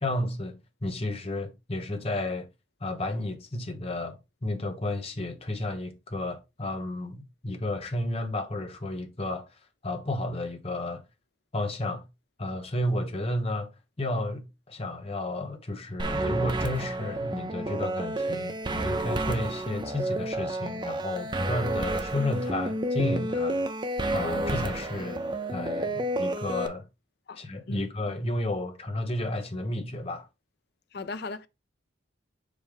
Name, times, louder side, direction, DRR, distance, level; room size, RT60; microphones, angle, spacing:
voice 1, 0.0-2.5 2.8-9.5 9.8-11.0 11.5-12.1 12.4-23.6 24.1-25.2 25.5-26.9 27.4-30.3, left 1 dB, 30° left, 1.0 m, -32 dB
sound 1, 16.0-26.7, right 1 dB, 25° right, 0.6 m, -30 dB
voice 2, 30.9-31.5, left 3 dB, 55° left, 0.5 m, -36 dB
5.3 x 5.0 x 3.6 m
head